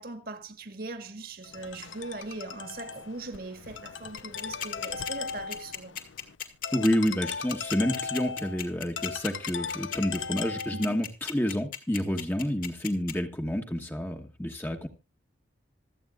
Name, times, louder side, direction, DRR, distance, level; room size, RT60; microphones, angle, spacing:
voice 1, 0.0-6.0 10.7-11.0, right 2 dB, 50° right, 1.7 m, -40 dB
Ringtone, 1.4-11.0, left 6 dB, 80° left, 0.7 m, -38 dB
sound 1, 4.2-13.1, left 9 dB, 50° left, 2.0 m, -36 dB
voice 2, 6.7-14.9, equal, 10° left, 1.2 m, -29 dB
26.5 x 8.8 x 2.4 m
head